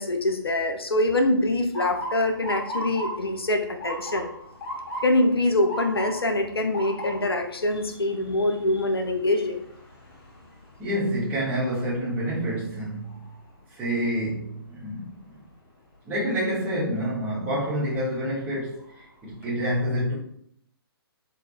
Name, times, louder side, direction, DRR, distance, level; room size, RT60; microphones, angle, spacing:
voice 1, 0.0-4.3 5.0-9.6, left 1 dB, 75° left, 4 dB, 0.6 m, -24 dB
Motor vehicle (road) / Siren, 1.7-13.6 14.1-14.5 15.3-15.6 17.5-17.7 18.2-18.3 18.8-19.4, right 1 dB, 30° left, 1.1 m, -38 dB
voice 2, 10.8-13.2 13.8-15.0 16.0-18.8 19.2-20.1, equal, 10° right, -7 dB, 1.5 m, -27 dB
4.2 x 3.8 x 2.3 m, 0.67 s
figure-of-eight pair, 135°, 13 cm